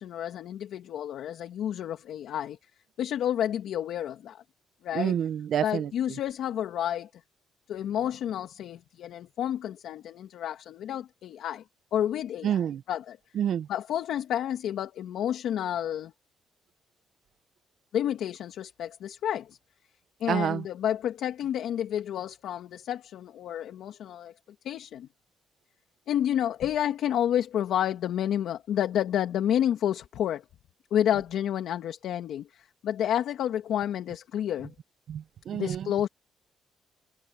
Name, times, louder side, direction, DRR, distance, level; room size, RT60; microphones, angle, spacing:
voice 1, 0.0-2.6 3.0-4.4 4.8-5.2 5.6-7.1 7.7-11.6 11.9-12.6 12.9-13.2 13.7-16.1 17.9-19.6 20.2-24.3 24.6-25.1 26.1-30.4 30.9-34.7 35.5-36.1, left 10 dB, 75° left, 1.9 m, -30 dB
voice 2, 4.9-5.9 12.4-12.8 13.3-13.7 20.3-20.6 35.1-35.9, right 9 dB, 65° right, 0.5 m, -28 dB
cardioid pair, 90°, 0 cm